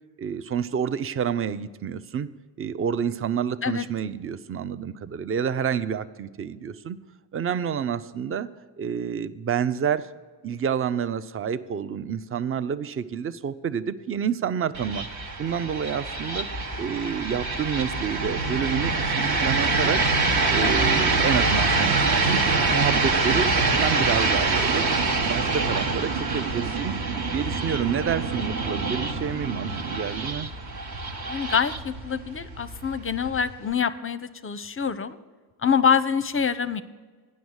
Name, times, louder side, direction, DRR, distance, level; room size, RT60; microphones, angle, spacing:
voice 1, 0.2-2.3 2.6-7.0 7.3-8.5 8.8-10.1 10.4-15.1 15.4-16.5 16.8-20.1 20.5-22.4 22.7-24.8 25.3-26.9 27.3-30.5, right 7 dB, 30° right, 15 dB, 0.5 m, -28 dB
sound 1, 14.7-33.7, right 3 dB, 50° right, 1.1 m, -25 dB
voice 2, 31.3-35.2 35.6-36.8, left 6 dB, 30° left, 14 dB, 0.5 m, -25 dB
9.3 x 6.4 x 8.0 m, 1.4 s
supercardioid pair, 50°, 48 cm